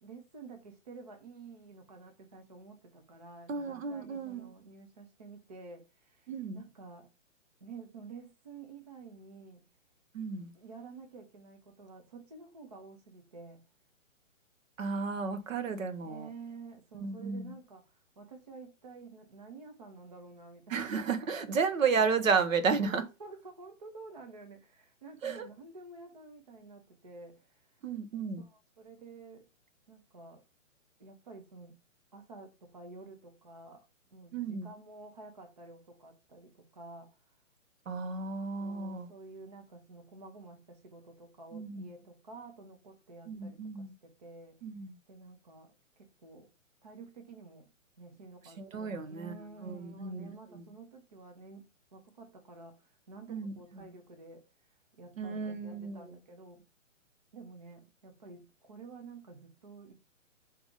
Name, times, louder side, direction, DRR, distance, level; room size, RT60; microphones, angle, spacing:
voice 1, 0.0-7.1 7.6-9.6 10.5-13.6 16.0-21.7 22.8-27.8 28.4-29.5 29.9-30.4 31.0-31.8 32.1-33.8 34.1-37.3 38.6-44.6 45.1-46.5 46.8-47.7 48.0-56.6 57.3-59.9, right 3 dB, 30° right, 0.6 m, -51 dB
voice 2, 3.5-4.5 6.3-6.6 10.1-10.5 14.8-16.3 16.9-17.5 20.7-23.0 25.2-25.5 27.8-28.4 34.3-34.7 37.9-39.1 41.5-41.9 43.3-43.9 44.6-45.0 48.6-49.3 49.6-50.6 53.3-53.5 55.2-56.1, right 5 dB, 75° right, 1.0 m, -33 dB
3.6 x 2.9 x 3.6 m
hypercardioid pair, 170°, 39 cm